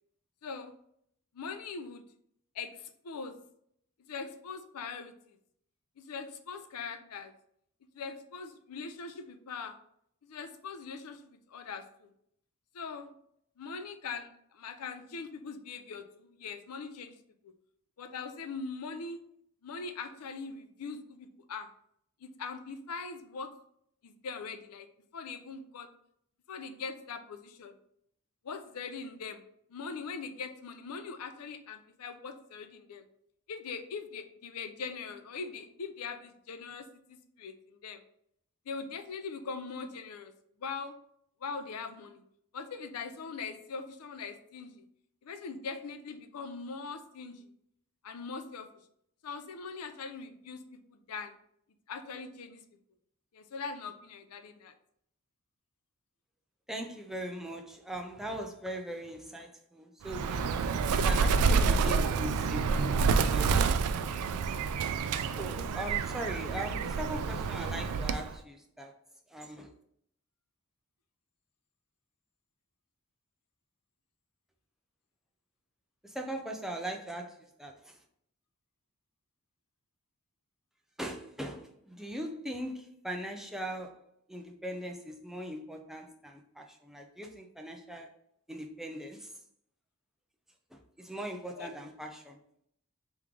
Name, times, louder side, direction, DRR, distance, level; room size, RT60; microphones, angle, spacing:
voice 1, 0.4-0.7 1.3-2.0 2.5-3.3 4.1-5.1 6.0-7.3 7.9-9.8 10.2-12.1 12.7-13.1 13.6-17.2 18.0-19.2 19.6-21.7 22.2-23.5 24.0-24.9 25.1-25.9 26.5-27.7 28.4-29.4 29.7-33.0 33.5-38.0 38.7-40.3 40.6-40.9 41.4-42.2 42.5-44.8 45.2-47.5 48.0-48.7 49.2-50.6 50.9-51.3 51.9-52.6 53.3-54.7 60.5-60.6 91.6-91.7, left 5 dB, 85° left, 8 dB, 0.5 m, -41 dB
voice 2, 56.7-60.5 60.9-64.1 65.4-68.9 69.3-69.7 76.0-78.0 81.0-84.0 84.3-88.1 88.5-89.4 90.7-92.4, right 1 dB, ahead, 2 dB, 0.4 m, -40 dB
Bird, 60.1-68.3, right 5 dB, 80° right, 0.3 m, -28 dB
3.5 x 3.1 x 3.6 m, 0.71 s
head